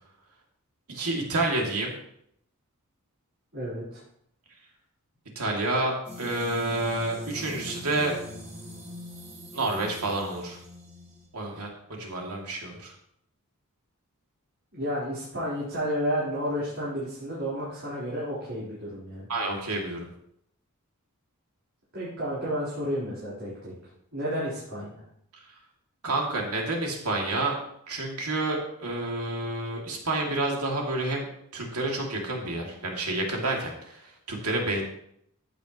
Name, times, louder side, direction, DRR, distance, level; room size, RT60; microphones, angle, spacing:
voice 1, 0.9-1.9 5.4-8.2 9.5-10.6 11.3-12.9 19.3-20.1 26.0-27.6 27.9-31.3 31.5-34.8, right 2 dB, 80° right, 0 dB, 2.6 m, -29 dB
voice 2, 3.5-4.0 14.7-19.3 21.9-23.7 24.1-25.0, equal, 60° right, -10 dB, 4.1 m, -31 dB
sound 1, 6.0-11.3, left 1 dB, 30° right, 3.7 m, -42 dB
14.5 x 9.3 x 3.1 m, 0.72 s
head